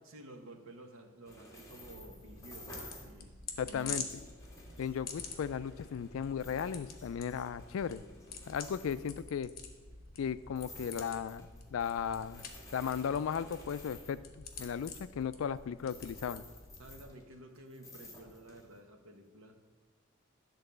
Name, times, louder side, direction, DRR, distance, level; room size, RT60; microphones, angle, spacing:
voice 1, 0.0-4.1 16.8-19.6, right 1 dB, 75° right, 4 dB, 1.0 m, -52 dB
sound 1, 1.2-3.2 3.6-9.6 10.5-17.4 17.7-18.8, left 1 dB, 15° left, 1.7 m, -54 dB
sound 2, 1.8-17.0, left 5 dB, 50° left, 1.0 m, -48 dB
voice 2, 3.6-4.0 4.8-8.0 8.5-9.5 10.2-12.4 12.7-16.4, left 7 dB, 70° left, 15 dB, 0.3 m, -36 dB
10.5 x 4.0 x 6.7 m, 1.3 s
head